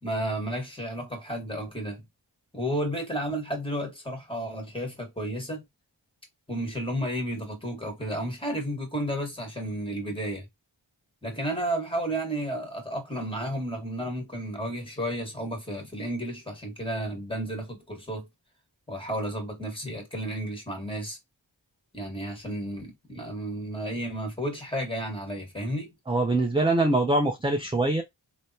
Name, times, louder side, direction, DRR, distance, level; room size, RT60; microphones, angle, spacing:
voice 1, 0.0-2.0 2.5-5.6 6.5-10.5 11.2-18.3 18.9-21.2 21.9-25.9, right 1 dB, 10° left, 1.4 m, -32 dB
voice 2, 26.1-28.0, right 2 dB, 10° right, 0.5 m, -23 dB
3.3 x 2.1 x 2.7 m
wide cardioid pair, 40°, 46 cm